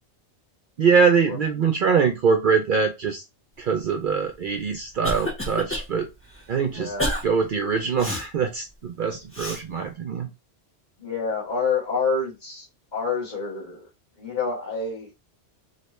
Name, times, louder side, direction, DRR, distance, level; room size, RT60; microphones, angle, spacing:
voice 1, 0.8-3.2 3.6-6.1 6.5-6.9 7.2-10.3, right 5 dB, 60° right, 0.6 m, -23 dB
Cough, 4.4-5.9 6.3-6.4 7.0-7.2 8.0-8.3 9.3-9.6, left 1 dB, 10° left, 1.0 m, -29 dB
voice 2, 6.7-7.1 10.2-10.3 11.0-12.7 12.9-13.9 14.2-15.1, left 4 dB, 40° left, 1.5 m, -28 dB
3.2 x 2.9 x 3.0 m
omnidirectional pair, 1.2 m